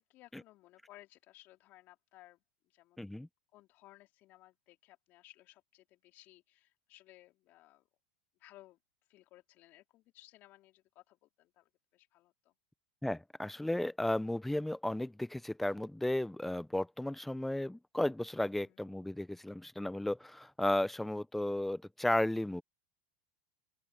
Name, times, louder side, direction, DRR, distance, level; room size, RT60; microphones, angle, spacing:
voice 1, 0.0-2.4 2.7-3.0 3.5-7.8 8.4-8.8 9.1-12.5 18.6-18.9, left 17 dB, 45° left, 4.6 m, -60 dB
voice 2, 3.0-3.3 13.0-22.6, left 1 dB, 5° left, 0.9 m, -34 dB
open air
hypercardioid pair, 100°, 4 cm